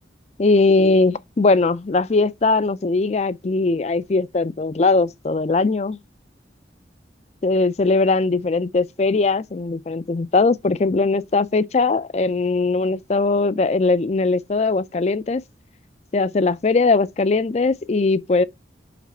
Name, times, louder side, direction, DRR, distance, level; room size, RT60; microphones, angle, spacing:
voice 1, 0.4-6.0 7.4-15.4 16.1-18.4, left 3 dB, 35° left, 0.4 m, -20 dB
5.9 x 4.9 x 4.2 m
head